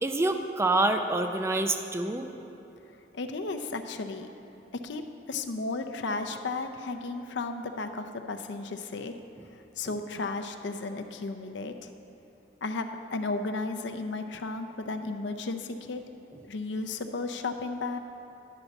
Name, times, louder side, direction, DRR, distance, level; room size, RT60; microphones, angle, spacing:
voice 1, 0.0-2.3, right 2 dB, 15° right, 6 dB, 0.4 m, -26 dB
voice 2, 3.1-4.3 4.8-5.0 5.3-9.1 9.8-11.9 12.6-16.0 16.5-18.0, left 3 dB, 75° left, 6 dB, 0.6 m, -34 dB
11.0 x 4.1 x 6.9 m, 3.0 s
head